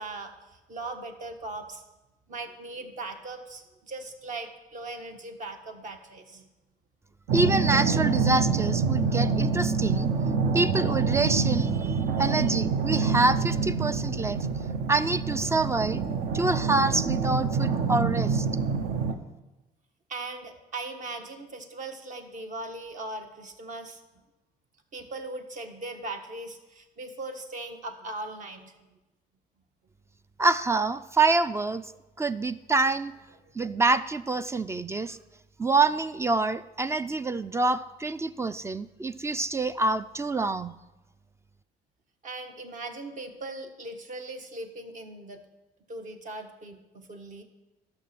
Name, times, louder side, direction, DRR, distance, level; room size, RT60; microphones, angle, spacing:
voice 1, 0.0-1.8 2.3-6.5 20.1-24.0 24.9-29.0 42.2-45.4 45.9-47.4, right 2 dB, 50° right, 5 dB, 1.4 m, -39 dB
voice 2, 7.3-10.1 10.5-14.4 14.9-16.0 16.3-18.5 30.4-31.9 32.2-33.1 33.6-35.2 35.6-40.8, right 3 dB, 15° right, 14 dB, 0.3 m, -26 dB
sound 1, 7.3-19.1, right 5 dB, 65° right, 1.0 m, -26 dB
13.0 x 6.2 x 5.9 m, 1.0 s
cardioid pair, 110°, 17 cm